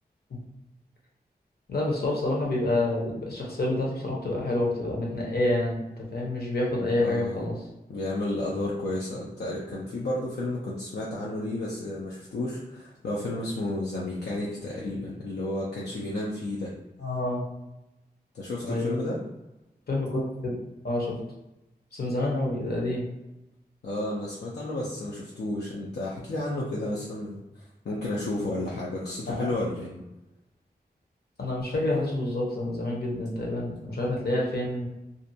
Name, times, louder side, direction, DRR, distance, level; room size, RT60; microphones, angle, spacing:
voice 1, 1.7-7.6 17.0-17.4 18.6-19.0 19.9-20.6 20.8-21.2 21.9-23.0 29.3-29.5 31.4-34.8, left 2 dB, 70° left, -2 dB, 0.8 m, -28 dB
voice 2, 7.0-7.4 7.9-16.7 18.3-19.2 23.8-29.9, left 1 dB, 85° left, -5 dB, 0.5 m, -32 dB
2.5 x 2.1 x 2.7 m, 0.94 s
wide cardioid pair, 60°, 17 cm